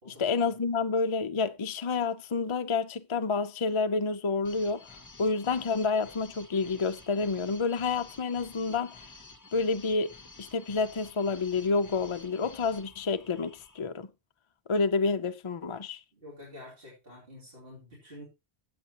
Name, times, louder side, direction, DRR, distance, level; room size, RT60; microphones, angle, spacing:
voice 1, 0.1-4.8 5.2-9.0 9.5-14.1 14.7-16.0, left 4 dB, 40° left, 0.5 m, -29 dB
sound 1, 4.4-13.8, left 3 dB, 20° left, 0.8 m, -51 dB
voice 2, 16.1-18.2, left 1 dB, 60° right, 3.1 m, -48 dB
15.5 x 8.0 x 2.9 m
omnidirectional pair, 1.1 m